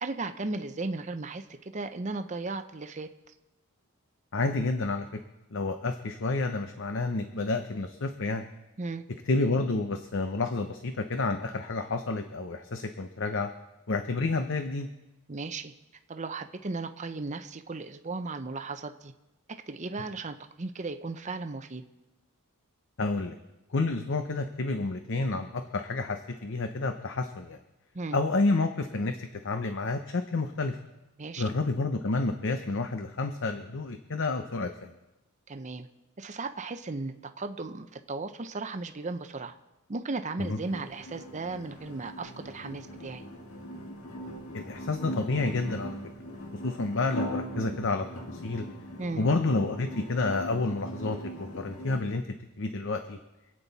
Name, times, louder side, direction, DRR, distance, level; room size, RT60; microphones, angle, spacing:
voice 1, 0.0-1.4 1.7-3.1 8.8-9.1 15.3-15.7 16.1-19.1 19.7-21.8 27.9-28.2 31.2-31.4 35.5-35.9 36.2-39.6 39.9-43.2 49.0-49.3, right 3 dB, 35° right, 8 dB, 0.7 m, -36 dB
voice 2, 4.3-5.2 5.5-8.4 9.3-13.5 13.9-14.9 23.0-23.4 23.7-27.6 28.1-30.8 31.4-34.9 40.4-40.6 44.5-46.0 46.6-48.1 48.3-48.6 49.2-52.2 52.6-53.2, left 3 dB, 60° left, 7 dB, 0.8 m, -29 dB
sound 1, 40.4-52.0, equal, 80° left, 1.9 m, -40 dB
26.5 x 8.9 x 4.1 m, 1.0 s
head